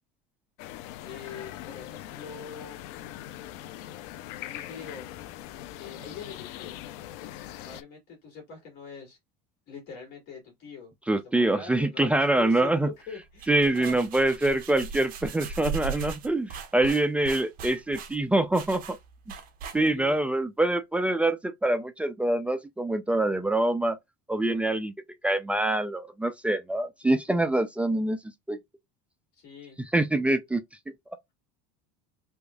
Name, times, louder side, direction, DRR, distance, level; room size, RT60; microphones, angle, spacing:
sound 1, 0.6-7.8, left 13 dB, 70° left, 0.5 m, -41 dB
voice 1, 1.0-2.9 4.4-5.1 5.7-6.8 7.6-9.2 9.7-14.0 19.8-20.2 29.3-29.8, left 5 dB, 55° left, 2.3 m, -44 dB
voice 2, 11.1-12.9 13.5-19.0 19.7-24.0 24.3-24.9 25.2-28.2 28.5-28.6 29.9-30.6, right 2 dB, 5° right, 0.3 m, -25 dB
sound 2, 13.2-20.2, right 5 dB, 45° right, 1.0 m, -38 dB
3.5 x 3.4 x 2.3 m
cardioid pair, 140°, 20 cm